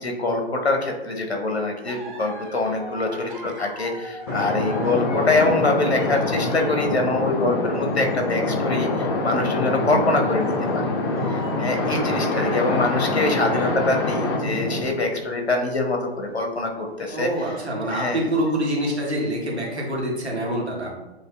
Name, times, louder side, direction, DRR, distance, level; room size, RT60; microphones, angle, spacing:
voice 1, 0.0-10.8 11.3-17.5 17.9-18.2, left 2 dB, 75° left, 3 dB, 0.8 m, -24 dB
sound 1, 1.8-7.1 7.7-8.2 8.7-8.8 9.4-9.5 10.4-10.8 11.1-13.9 14.3-14.4 15.4-15.7 16.5-16.7 17.1-17.2, right 2 dB, 50° right, 1.3 m, -40 dB
sound 2, 4.3-14.8, left 2 dB, 25° left, 0.5 m, -25 dB
voice 2, 17.1-20.9, right 1 dB, 80° right, -2 dB, 1.4 m, -26 dB
7.4 x 2.6 x 2.3 m, 1.1 s
figure-of-eight pair, 120°, 32 cm